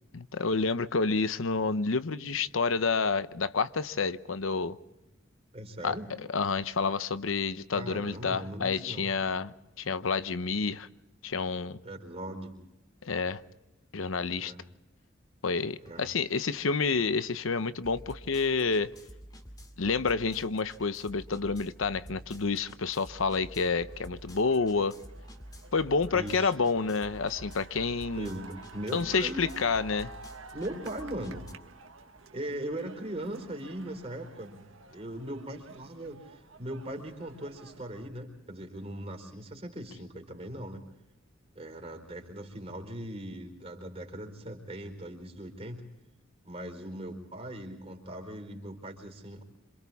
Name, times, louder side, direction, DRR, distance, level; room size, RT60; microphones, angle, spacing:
voice 1, 0.1-4.8 5.8-6.0 6.3-10.9 11.2-11.8 13.0-13.4 13.9-14.5 15.4-18.9 19.8-25.0 25.7-28.3 28.9-30.1, left 4 dB, 90° left, 0.8 m, -29 dB
voice 2, 5.5-6.1 7.7-9.1 11.8-12.6 14.4-14.6 15.8-16.1 26.1-26.5 28.1-29.4 30.5-31.4 32.3-40.8 41.5-45.8 46.4-49.4, right 1 dB, 30° right, 4.4 m, -39 dB
sound 1, 15.9-16.0 16.3-31.5, equal, 20° left, 2.4 m, -49 dB
sound 2, 23.9-38.1, right 3 dB, 85° right, 1.6 m, -51 dB
27.5 x 27.0 x 3.6 m
head